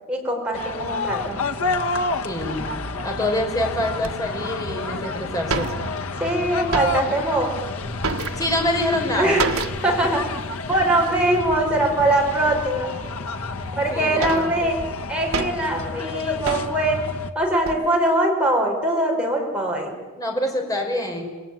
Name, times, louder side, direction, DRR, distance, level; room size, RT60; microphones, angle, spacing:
voice 1, 0.1-1.4 6.2-7.5 9.1-9.4 9.8-10.2 10.7-12.9 13.8-14.8 15.1-17.0 17.4-19.9, right 1 dB, 5° right, -1 dB, 5.5 m, -22 dB
sound 1, 0.5-17.3, left 3 dB, 80° left, 1.5 m, -30 dB
voice 2, 2.2-2.6 3.0-5.7 8.3-9.4 9.8-9.9 13.5-14.5 20.2-21.3, left 1 dB, 15° left, 2 dB, 5.1 m, -26 dB
sound 2, 4.0-4.1 4.8-4.9 5.1-5.2 5.4-6.2 6.5-7.3 7.6-8.8 9.4-10.0 10.3-10.4 10.7-10.9 11.5-12.0 12.6-12.7 13.4-13.5 13.9-15.8 16.5-16.9 17.4-17.9, right 4 dB, 75° right, 1.6 m, -29 dB
28.0 x 21.0 x 9.2 m, 1.3 s
head